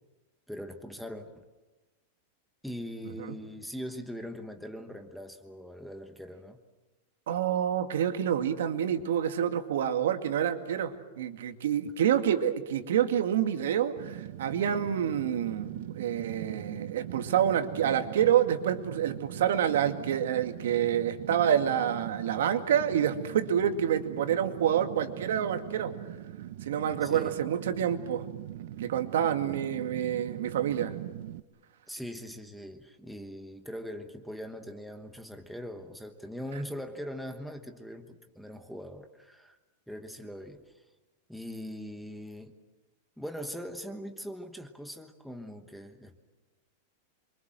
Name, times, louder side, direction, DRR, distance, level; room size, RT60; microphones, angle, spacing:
voice 1, 0.5-1.3 2.6-6.6 27.0-27.3 31.9-39.6 39.9-40.6 41.3-42.5 43.2-46.2, equal, ahead, 6 dB, 1.2 m, -41 dB
voice 2, 7.3-25.9 26.6-28.3 28.8-30.9, right 9 dB, 80° right, 7 dB, 2.2 m, -28 dB
Fire, 14.0-31.4, right 13 dB, 55° right, 0.8 m, -41 dB
27.5 x 24.5 x 7.7 m, 1.1 s
supercardioid pair, 180°, 0 cm